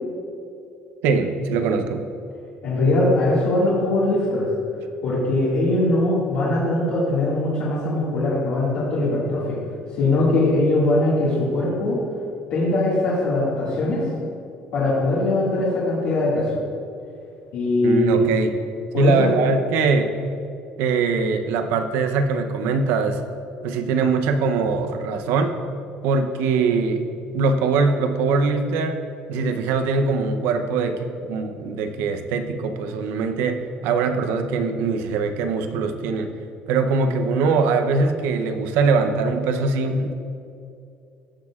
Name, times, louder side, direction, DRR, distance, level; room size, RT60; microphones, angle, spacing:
voice 1, 1.0-2.0 17.8-18.5 18.9-20.1 20.8-23.2 23.6-25.5 26.0-27.0 27.3-29.0 29.3-36.3 36.7-40.1, right 4 dB, 85° right, 7 dB, 0.7 m, -22 dB
voice 2, 2.6-4.5 5.0-9.6 9.9-12.0 12.5-14.0 14.7-16.6 17.5-18.2 18.9-19.3, left 2 dB, 70° left, -9 dB, 2.0 m, -21 dB
15.5 x 6.3 x 2.4 m, 2.6 s
cardioid pair, 160°, 4 cm